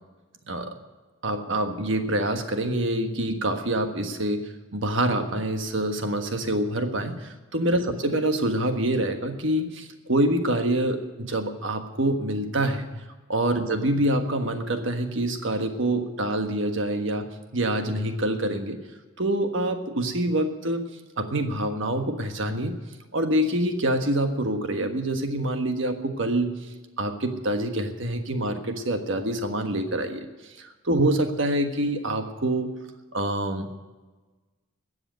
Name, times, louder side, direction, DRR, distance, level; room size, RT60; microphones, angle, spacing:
voice 1, 1.2-12.9 13.3-18.8 19.2-20.9 21.2-22.8 23.1-26.5 27.0-30.3 30.6-32.7 33.1-33.7, right 1 dB, 65° right, 6 dB, 1.5 m, -26 dB
14.0 x 8.0 x 9.1 m, 1.3 s
head